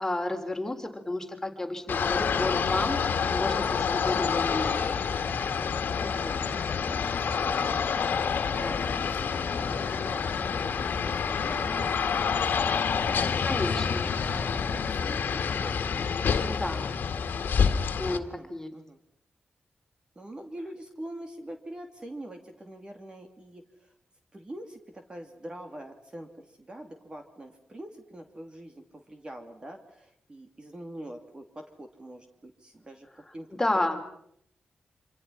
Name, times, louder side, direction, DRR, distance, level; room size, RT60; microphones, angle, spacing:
voice 1, 0.0-3.0 3.3-4.8 13.4-14.0 16.5-16.9 18.0-18.7 33.6-34.0, left 2 dB, 15° left, 4 dB, 3.7 m, -31 dB
sound 1, 1.9-18.2, left 6 dB, 85° left, 1.9 m, -28 dB
voice 2, 6.0-9.3 9.6-15.8 18.1-19.0 20.1-23.9 24.3-34.0, right 1 dB, 30° right, 4 dB, 2.8 m, -44 dB
27.0 x 26.5 x 5.8 m, 0.69 s
wide cardioid pair, 115°, 3 cm